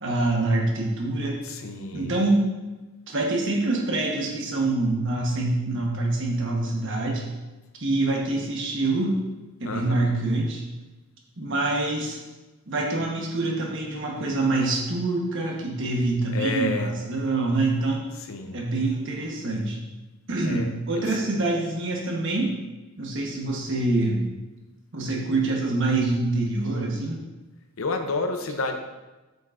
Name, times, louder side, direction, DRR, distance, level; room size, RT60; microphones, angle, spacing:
voice 1, 0.0-1.5 1.9-2.5 3.1-7.3 7.8-9.2 9.6-10.6 11.4-12.2 12.7-18.1 18.5-19.8 20.3-22.5 23.0-24.2 24.9-27.2, right 2 dB, 60° right, -1 dB, 1.2 m, -25 dB
voice 2, 1.4-2.2 9.6-10.0 16.3-17.0 18.1-18.6 20.4-21.3 27.8-28.8, left 2 dB, 75° left, 5 dB, 0.7 m, -30 dB
7.6 x 5.3 x 2.6 m, 1.1 s
head